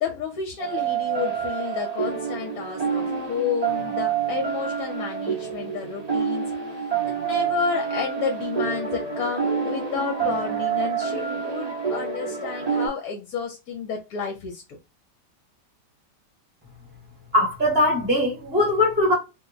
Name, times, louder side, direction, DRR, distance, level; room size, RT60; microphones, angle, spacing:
voice 1, 0.0-6.5 6.7-14.8, left 6 dB, 65° left, 1.1 m, -31 dB
sound 1, 0.6-12.9, right 7 dB, 75° right, 0.3 m, -27 dB
voice 2, 17.3-19.1, left 1 dB, 10° right, 0.8 m, -20 dB
2.9 x 2.1 x 3.8 m
omnidirectional pair, 1.9 m